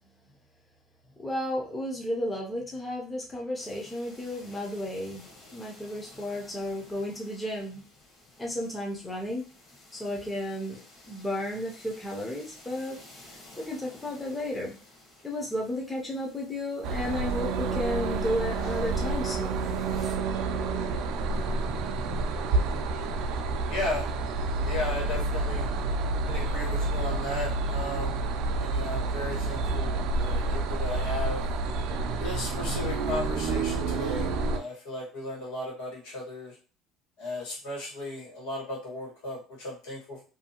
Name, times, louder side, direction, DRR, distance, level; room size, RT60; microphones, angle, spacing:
voice 1, 1.2-7.8 8.4-9.4 9.9-10.8 11.1-13.0 13.6-14.8 15.2-19.8, left 1 dB, 10° left, -1 dB, 0.5 m, -33 dB
sound 1, 3.5-20.2, left 2 dB, 30° left, 0.9 m, -54 dB
sound 2, 16.8-34.6, right 3 dB, 55° right, 0.3 m, -29 dB
voice 2, 23.7-24.1 24.6-25.7 26.3-28.3 28.6-31.5 32.2-36.6 37.2-40.2, left 2 dB, 85° left, -3 dB, 1.5 m, -35 dB
2.6 x 2.6 x 2.8 m, 0.35 s
cardioid pair, 170°, 0 cm